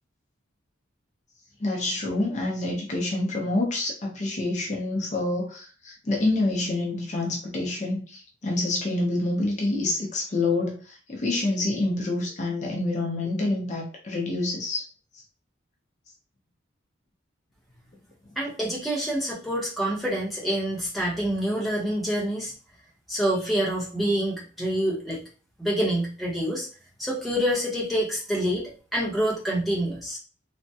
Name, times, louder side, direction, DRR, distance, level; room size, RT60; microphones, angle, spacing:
voice 1, 1.6-14.9 15.1-15.2, left 2 dB, 35° left, -1 dB, 0.6 m, -27 dB
voice 2, 18.4-22.5 23.1-25.2 25.6-26.7 27.0-30.2, right 1 dB, ahead, -5 dB, 0.7 m, -27 dB
3.3 x 2.1 x 2.7 m, 0.39 s
head